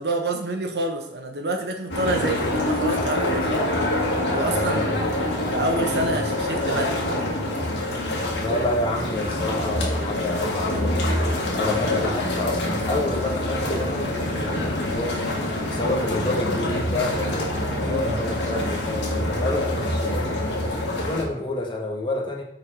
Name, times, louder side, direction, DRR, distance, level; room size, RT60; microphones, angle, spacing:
voice 1, 0.0-3.5 4.3-4.9 5.2-5.3 5.5-7.2 17.8-18.2, right 2 dB, 70° right, 4 dB, 1.1 m, -27 dB
sound 1, 1.9-21.2, left 1 dB, 85° left, 1.8 m, -25 dB
voice 2, 4.4-5.2 6.0-6.2 8.3-11.2 11.5-15.3 15.6-20.5 21.0-22.4, left 2 dB, 25° left, -1 dB, 1.3 m, -29 dB
7.0 x 4.4 x 4.7 m, 0.76 s
head